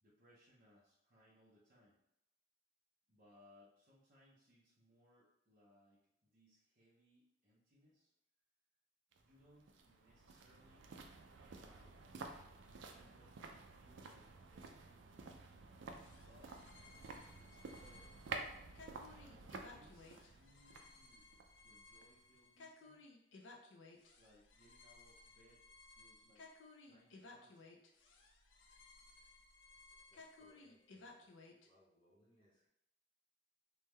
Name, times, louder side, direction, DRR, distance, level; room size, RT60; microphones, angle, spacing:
voice 1, 0.0-2.0 3.1-8.1 9.2-10.9 11.5-12.0 12.9-15.1 15.6-16.6 17.4-18.1 19.1-21.3 21.6-23.0 24.2-25.7 25.9-26.5 26.8-27.7, equal, 45° right, -7 dB, 0.7 m, -69 dB
sound 1, 9.1-22.3 22.6-22.7, right 4 dB, 75° right, 0.4 m, -52 dB
sound 2, 15.9-31.7, left 3 dB, 75° left, 0.5 m, -60 dB
voice 2, 29.7-31.3 31.6-32.7, equal, 25° left, -5 dB, 0.8 m, -72 dB
3.4 x 2.1 x 3.1 m, 0.83 s
head